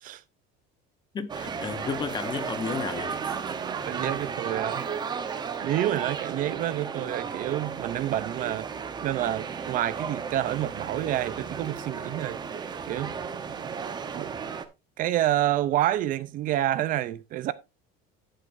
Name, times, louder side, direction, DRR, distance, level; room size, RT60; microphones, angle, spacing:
voice 1, 1.1-3.3, left 6 dB, 20° left, 0.8 m, -33 dB
sound 1, 1.3-14.6, right 6 dB, 20° right, 0.8 m, -34 dB
voice 2, 3.9-4.8 5.6-8.7 9.0-12.4 12.8-13.1 14.1-14.3 15.0-17.5, right 13 dB, 40° right, 0.5 m, -28 dB
11.0 x 9.1 x 2.6 m
cardioid pair, 170°, 20 cm